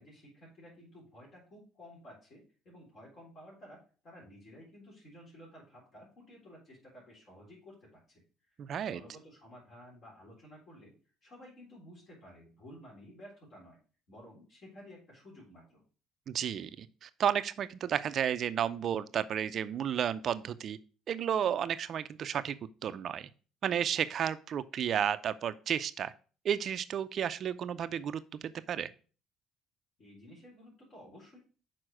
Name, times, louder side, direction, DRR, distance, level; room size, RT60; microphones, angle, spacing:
voice 1, 0.0-8.6 8.9-10.9 11.2-13.8 14.1-15.8 30.0-31.4, equal, 50° left, -4 dB, 3.8 m, -53 dB
voice 2, 8.6-9.0 16.3-20.8 21.1-22.6 22.8-23.3 23.6-26.1 26.4-28.2 28.7-28.9, right 9 dB, 55° right, 14 dB, 0.4 m, -32 dB
6.3 x 4.3 x 6.1 m, 0.38 s
hypercardioid pair, 65°, 0 cm